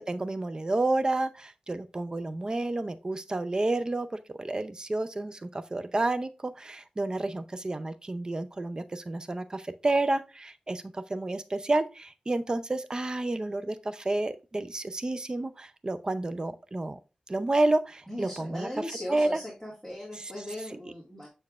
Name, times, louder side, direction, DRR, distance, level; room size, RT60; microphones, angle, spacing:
voice 1, 0.0-17.0 17.3-19.4 20.1-20.3, right 2 dB, 30° right, 0.5 m, -30 dB
voice 2, 18.1-21.3, left 1 dB, 5° right, 1.8 m, -38 dB
6.6 x 6.4 x 2.4 m
wide cardioid pair, 100°, 3 cm